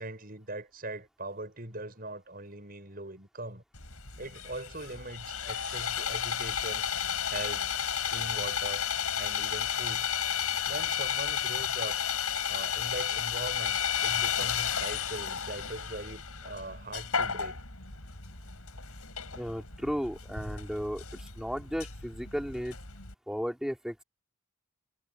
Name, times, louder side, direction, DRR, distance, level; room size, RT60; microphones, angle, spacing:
voice 1, 0.0-3.6 4.2-6.8 7.2-7.7 8.1-8.9 9.1-10.1 10.7-12.0 12.5-17.6, right 2 dB, 40° right, 7.0 m, -41 dB
Sawing, 3.7-23.1, left 8 dB, 85° left, 6.9 m, -33 dB
voice 2, 19.3-22.8 23.3-24.0, equal, ahead, 4.1 m, -35 dB
head